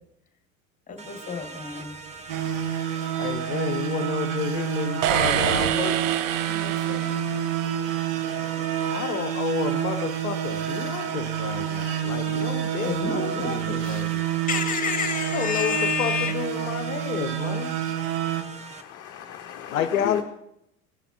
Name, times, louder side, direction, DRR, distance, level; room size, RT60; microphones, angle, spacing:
voice 1, 0.9-1.9 6.5-7.2 12.6-14.1 14.5-16.3, left 5 dB, 20° left, 5 dB, 1.7 m, -30 dB
sound 1, 1.0-18.8, right 4 dB, 15° right, 0.7 m, -42 dB
sound 2, 2.3-18.4, right 10 dB, 45° right, 1.1 m, -28 dB
voice 2, 3.2-6.0 8.9-14.4 15.3-17.7 19.7-20.2, left 9 dB, 70° left, 9 dB, 0.6 m, -30 dB
sound 3, 5.0-7.9, right 11 dB, 60° right, 0.7 m, -27 dB
voice 3, 18.4-20.2, left 11 dB, 35° left, 4 dB, 0.8 m, -36 dB
17.5 x 9.8 x 2.6 m, 0.80 s
figure-of-eight pair, 70°, 43 cm